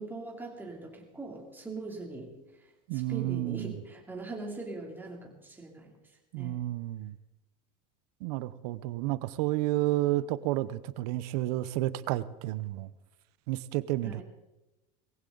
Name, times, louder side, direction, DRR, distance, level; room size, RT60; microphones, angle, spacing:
voice 1, 0.0-2.3 2.9-5.9 6.4-6.6 14.0-14.2, right 3 dB, 10° right, 3.1 m, -41 dB
voice 2, 2.9-3.8 6.3-7.1 8.2-12.9 13.5-14.2, right 16 dB, 70° right, 0.8 m, -31 dB
21.0 x 15.5 x 4.0 m
supercardioid pair, 140°, 21 cm